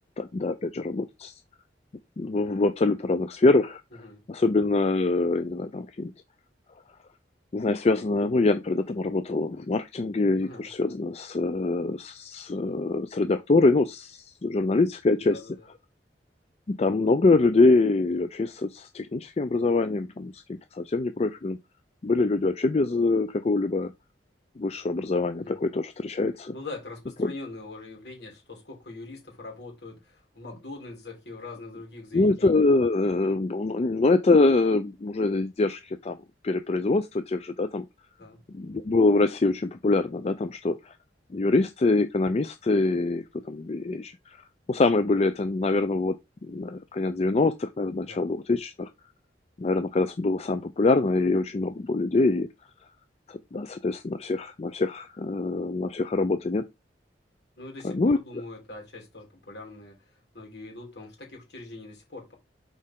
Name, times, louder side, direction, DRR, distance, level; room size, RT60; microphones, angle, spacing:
voice 1, 0.2-1.3 2.2-3.8 4.3-6.1 7.5-15.4 16.7-20.4 20.7-21.6 22.0-23.9 24.6-26.5 27.2-27.3 32.1-36.2 36.4-37.9 38.5-40.9 41.3-44.4 44.7-46.2 46.4-48.9 49.6-52.5 53.3-56.7 57.8-58.2, left 3 dB, 35° left, 0.4 m, -24 dB
voice 2, 15.2-15.7 25.4-25.6 26.5-32.7 38.2-38.4 48.0-48.3 57.6-60.0 60.3-62.3, left 2 dB, 70° left, 3.3 m, -42 dB
6.5 x 4.7 x 3.7 m
head